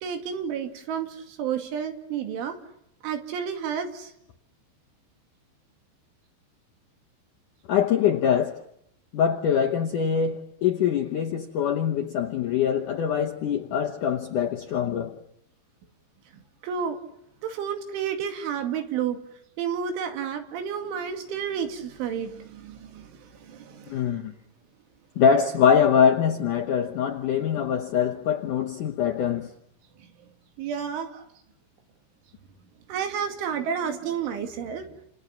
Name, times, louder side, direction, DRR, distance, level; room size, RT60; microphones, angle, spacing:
voice 1, 0.0-2.6 3.0-4.1 16.6-17.0 17.4-19.2 19.6-24.2 30.6-31.2 32.9-34.9, right 7 dB, 90° right, 4.8 m, -31 dB
voice 2, 7.7-8.6 9.1-15.2 23.9-24.3 25.2-29.5, left 8 dB, 75° left, 1.9 m, -23 dB
29.0 x 28.0 x 7.2 m
omnidirectional pair, 5.3 m